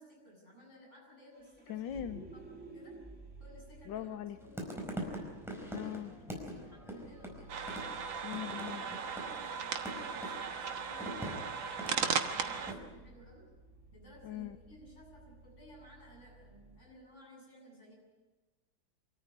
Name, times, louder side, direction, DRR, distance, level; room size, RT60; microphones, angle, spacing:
voice 1, 0.0-1.8 2.3-3.0 3.4-4.7 5.1-7.6 8.8-11.3 11.8-13.5 13.9-17.9, equal, 35° left, -1 dB, 8.4 m, -57 dB
Vehicle, 1.3-16.8, right 2 dB, 35° right, 3.0 m, -56 dB
voice 2, 1.7-2.3 3.9-4.4 5.7-6.1 8.2-8.8 14.2-14.6, left 11 dB, 65° left, 10 dB, 1.5 m, -40 dB
sound 1, 4.4-12.8, equal, ahead, 4.6 m, -43 dB
sound 2, 7.5-12.7, right 6 dB, 70° right, 2.0 m, -37 dB
25.5 x 13.5 x 9.8 m, 1.2 s
omnidirectional pair, 2.3 m